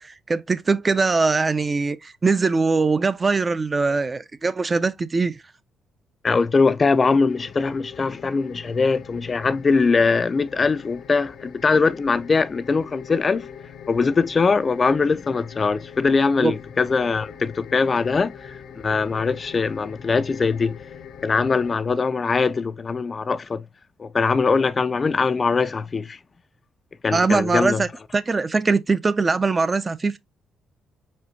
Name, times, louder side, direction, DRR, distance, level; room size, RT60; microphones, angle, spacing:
voice 1, 0.0-5.4 16.4-16.5 27.1-27.9 28.1-30.2, right 4 dB, 30° right, 0.5 m, -21 dB
voice 2, 6.2-13.5 13.9-20.8 21.2-23.6 24.0-26.2 27.0-27.8, left 4 dB, 35° left, 0.3 m, -21 dB
sound 1, 7.3-21.8, left 7 dB, 70° left, 0.7 m, -42 dB
4.4 x 4.2 x 2.6 m
cardioid pair, 90°, 0 cm